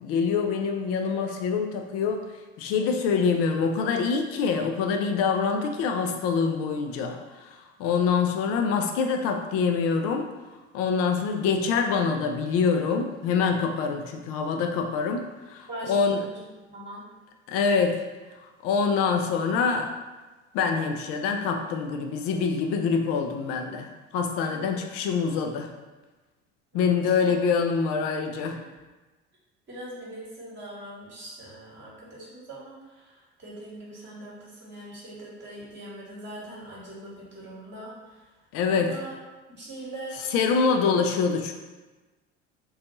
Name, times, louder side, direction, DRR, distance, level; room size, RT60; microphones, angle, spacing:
voice 1, 0.0-2.2 2.6-10.3 10.7-16.2 17.5-18.0 18.6-19.9 20.5-25.7 26.7-28.6 38.5-38.9 40.3-41.5, left 5 dB, 40° left, 4 dB, 0.5 m, -25 dB
voice 2, 15.7-16.4 16.7-17.0 24.5-24.9 26.7-27.3 29.7-38.2 38.7-39.2 39.5-40.2 40.6-40.9, right 1 dB, 30° right, -6 dB, 1.2 m, -41 dB
2.6 x 2.3 x 4.0 m, 1.2 s
figure-of-eight pair, 65°, 36 cm